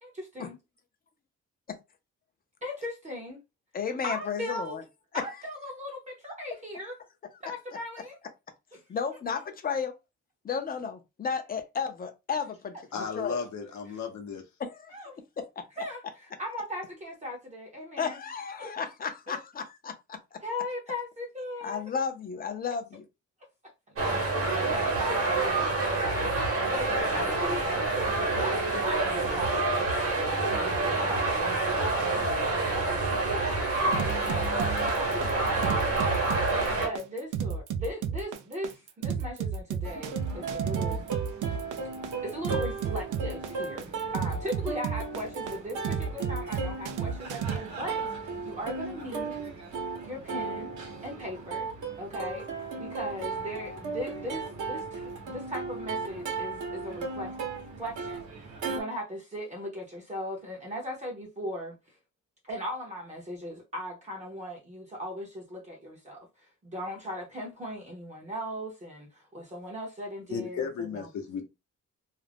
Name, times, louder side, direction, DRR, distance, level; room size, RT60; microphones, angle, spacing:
voice 1, 0.0-0.5 2.6-3.4 4.0-4.8 5.1-7.0 7.4-8.2 8.7-8.8 13.3-13.4 13.9-14.0 14.9-15.2 15.8-18.2 18.6-18.7 19.3-19.4 20.4-21.9 23.9-25.9 26.6-33.4 33.8-36.1 36.4-41.0 42.2-49.5 50.0-50.7 51.0-51.7 52.0-57.3 57.8-61.7 62.4-71.1, equal, 25° right, 0.6 m, -38 dB
voice 2, 3.7-4.8 8.9-9.9 10.4-13.4 14.6-15.0 15.4-15.5 18.0-19.9 21.6-23.0, left 6 dB, 30° left, 0.4 m, -33 dB
voice 3, 12.9-14.4 70.3-71.4, left 6 dB, 65° left, 0.7 m, -34 dB
sound 1, 24.0-36.9, right 2 dB, 45° right, 1.0 m, -27 dB
sound 2, 33.9-47.6, right 6 dB, 85° right, 0.4 m, -32 dB
Plucked string instrument, 39.8-58.8, right 4 dB, 70° right, 0.9 m, -36 dB
2.4 x 2.0 x 3.3 m
wide cardioid pair, 180°, 30 cm